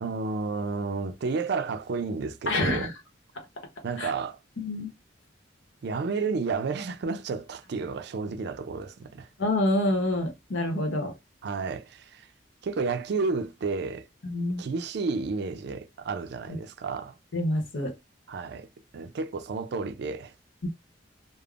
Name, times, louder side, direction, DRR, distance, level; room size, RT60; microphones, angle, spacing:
voice 1, 0.0-2.9 3.8-4.4 5.8-9.3 11.4-12.3 12.6-14.1 14.6-17.1 18.3-18.7 18.9-20.3, right 4 dB, 60° right, 0.4 m, -31 dB
voice 2, 2.5-2.9 3.3-3.4 4.0-4.1 4.6-4.9 9.4-11.1 14.2-14.6 16.5-16.6 17.3-17.9 20.6-20.7, left 1 dB, 90° left, 0.9 m, -27 dB
3.4 x 2.0 x 2.4 m
head